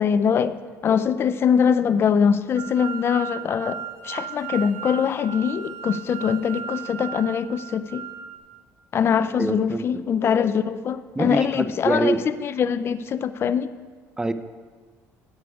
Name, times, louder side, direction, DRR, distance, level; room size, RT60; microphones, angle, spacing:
voice 1, 0.0-3.8 4.0-8.1 8.9-13.7, left 7 dB, 45° left, 14 dB, 0.5 m, -23 dB
sound 1, 2.6-8.4, right 9 dB, 65° right, 1.3 m, -36 dB
voice 2, 9.4-9.8 11.2-12.2 14.2-14.3, right 2 dB, 10° right, 11 dB, 0.5 m, -24 dB
9.5 x 8.2 x 4.8 m, 1.5 s
supercardioid pair, 95°, 6 cm